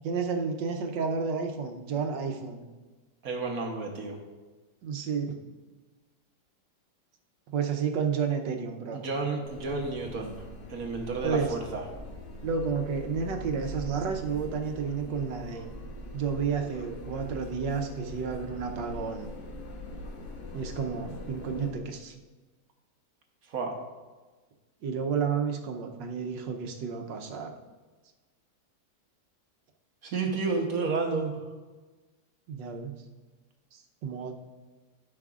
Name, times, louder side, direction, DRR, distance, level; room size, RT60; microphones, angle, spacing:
voice 1, 0.0-2.7 4.8-5.4 7.5-9.0 11.2-11.5 12.4-15.7 16.1-19.3 20.5-22.1 24.8-27.5 32.5-33.0 33.7-34.3, right 6 dB, 85° right, 4 dB, 1.5 m, -31 dB
voice 2, 3.2-4.2 8.9-10.4 10.7-11.8 23.5-23.7 30.0-31.4, right 4 dB, 55° right, 2 dB, 1.3 m, -31 dB
sound 1, 9.4-21.7, left 1 dB, 85° left, 1.7 m, -42 dB
13.0 x 5.8 x 2.4 m, 1.3 s
omnidirectional pair, 1.9 m